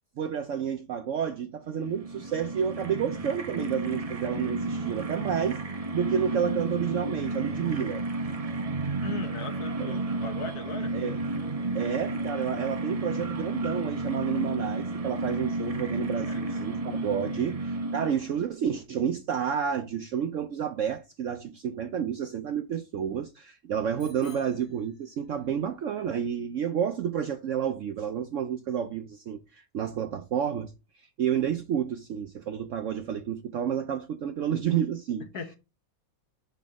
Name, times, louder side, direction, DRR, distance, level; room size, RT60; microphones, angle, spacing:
voice 1, 0.2-5.6 5.9-8.0 9.8-9.9 10.9-11.2 11.7-30.7 31.0-35.3, right 8 dB, 70° right, 0.7 m, -30 dB
sound 1, 1.7-18.4, right 2 dB, 40° right, 0.5 m, -32 dB
voice 2, 9.0-11.0 16.3-16.6 24.2-24.5 35.3-35.6, left 5 dB, 65° left, 1.6 m, -40 dB
Bicycle bell, 24.0-25.5, left 2 dB, 90° left, 3.1 m, -56 dB
6.1 x 5.8 x 3.6 m
omnidirectional pair, 1.8 m